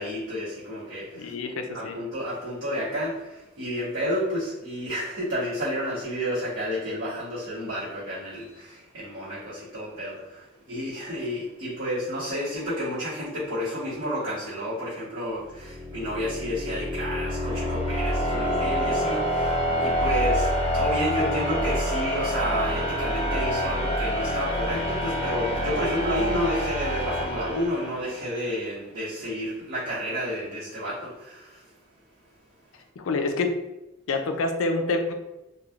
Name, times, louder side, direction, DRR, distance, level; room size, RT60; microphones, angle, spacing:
voice 1, 0.0-1.3 1.7-31.7, equal, 65° right, -12 dB, 1.1 m, -31 dB
voice 2, 1.1-2.0 33.0-33.6 34.1-35.1, left 3 dB, 85° left, 5 dB, 0.4 m, -27 dB
sound 1, 15.4-28.3, equal, 30° left, 0.6 m, -27 dB
3.0 x 2.3 x 2.4 m, 0.99 s
head